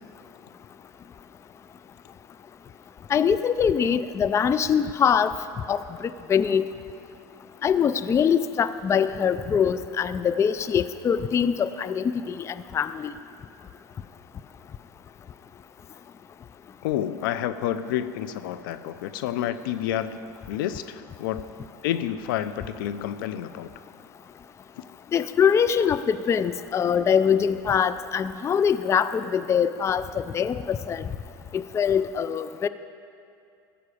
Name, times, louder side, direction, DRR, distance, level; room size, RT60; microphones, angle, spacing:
voice 1, 3.1-5.3 5.7-6.6 7.6-13.1 25.1-31.1 31.5-32.7, left 7 dB, 25° left, 13 dB, 0.4 m, -23 dB
voice 2, 16.8-20.2 20.5-21.5 21.8-23.7, left 11 dB, 80° left, 13 dB, 0.6 m, -29 dB
14.5 x 5.8 x 8.4 m, 2.5 s
supercardioid pair, 105°, 11 cm